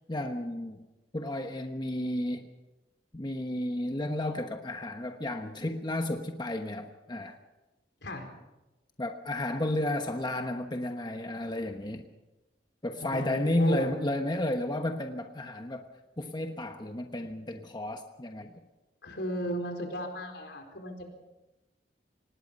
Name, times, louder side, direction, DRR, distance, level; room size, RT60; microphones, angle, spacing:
voice 1, 0.1-0.9 1.1-2.5 3.1-7.4 9.0-12.1 12.8-15.9 16.2-18.5, left 1 dB, 25° left, 5 dB, 1.1 m, -32 dB
voice 2, 13.0-13.9 19.0-21.1, equal, 75° left, 4 dB, 4.3 m, -35 dB
25.5 x 19.5 x 5.4 m, 1.0 s
head